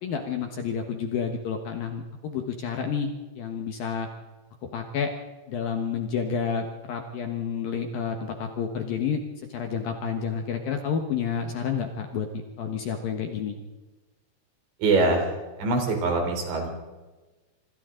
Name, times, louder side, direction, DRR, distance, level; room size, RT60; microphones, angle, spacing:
voice 1, 0.0-3.1 3.4-4.1 4.7-5.1 5.5-9.2 9.5-13.6, left 7 dB, 65° left, 4 dB, 2.5 m, -30 dB
voice 2, 14.8-15.3 15.6-16.7, right 3 dB, 70° right, 3 dB, 6.0 m, -23 dB
26.0 x 26.0 x 3.9 m, 1.2 s
omnidirectional pair, 5.5 m